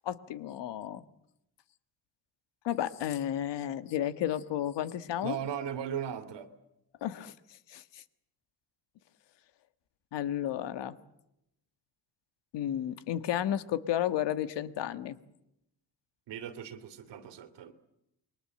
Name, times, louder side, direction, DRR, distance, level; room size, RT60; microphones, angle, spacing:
voice 1, 0.0-1.0 2.6-5.4 7.0-7.3 7.7-8.0 10.1-10.9 12.5-15.2, left 11 dB, 80° left, 13 dB, 1.5 m, -32 dB
voice 2, 5.2-6.5 16.3-17.7, right 9 dB, 80° right, 9 dB, 2.5 m, -37 dB
29.0 x 23.0 x 7.7 m, 0.83 s
cardioid pair, 175°, 42 cm